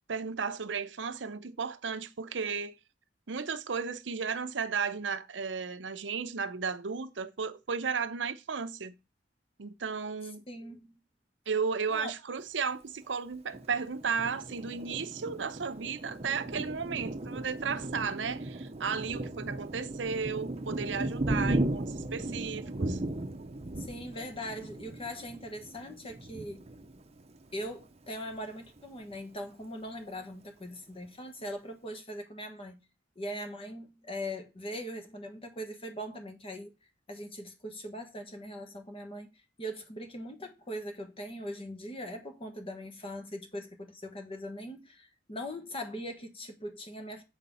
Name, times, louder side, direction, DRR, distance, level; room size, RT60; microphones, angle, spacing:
voice 1, 0.1-2.7 3.3-8.9 9.6-10.4 11.5-23.0, right 5 dB, 85° right, 0.7 m, -34 dB
voice 2, 10.5-10.9 11.9-12.1 23.8-26.7 27.5-32.8 33.1-36.7 37.1-39.3 39.6-47.2, equal, 30° left, 1.3 m, -41 dB
Thunder, 13.5-27.8 28.3-28.5 28.8-29.4, right 1 dB, 35° right, 0.8 m, -36 dB
7.4 x 4.2 x 5.4 m
head